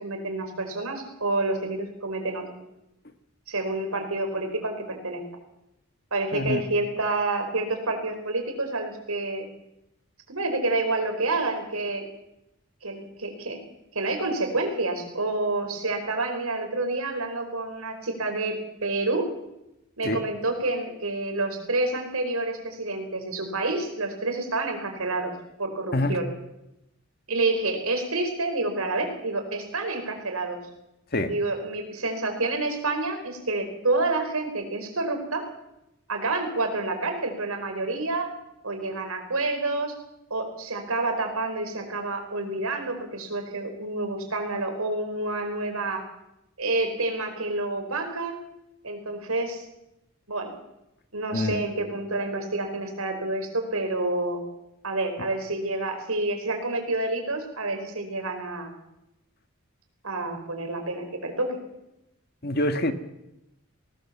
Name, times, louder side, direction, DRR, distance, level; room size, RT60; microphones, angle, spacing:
voice 1, 0.0-2.4 3.5-5.2 6.1-9.5 10.3-12.0 12.8-13.6 13.9-18.6 18.8-19.3 20.0-25.3 25.6-26.3 27.3-30.6 31.2-35.4 36.1-38.3 38.6-39.9 40.3-46.0 46.6-48.4 48.8-49.6 50.3-50.5 51.1-54.4 54.8-58.7 60.0-61.6, right 2 dB, 90° right, 5 dB, 4.8 m, -28 dB
voice 2, 62.4-62.9, left 1 dB, 45° left, 8 dB, 1.6 m, -25 dB
19.5 x 19.0 x 7.3 m, 0.89 s
head